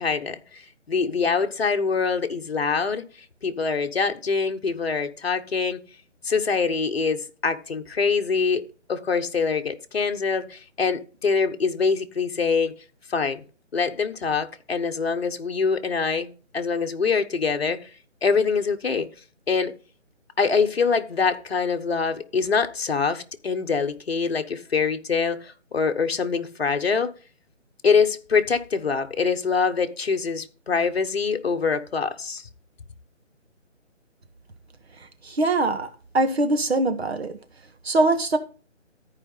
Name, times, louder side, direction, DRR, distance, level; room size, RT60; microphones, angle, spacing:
voice 1, 0.0-3.0 3.4-5.8 6.2-12.7 13.1-13.4 13.7-17.9 18.2-19.1 19.5-19.7 20.4-27.1 27.8-32.5, left 5 dB, 55° left, 1.3 m, -24 dB
voice 2, 35.2-35.9 36.1-37.4 37.8-38.4, right 2 dB, 55° right, 1.6 m, -22 dB
13.5 x 5.1 x 5.5 m
hypercardioid pair, 170°, 37 cm